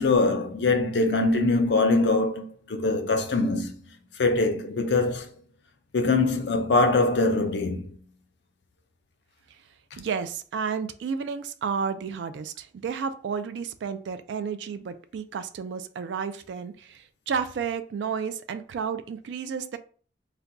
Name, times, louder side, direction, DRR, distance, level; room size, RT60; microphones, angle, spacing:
voice 1, 0.0-3.8 4.2-5.3 5.9-8.0, left 3 dB, 80° left, 0.5 m, -23 dB
voice 2, 10.0-19.8, right 6 dB, 85° right, 0.3 m, -32 dB
2.4 x 2.2 x 3.9 m
head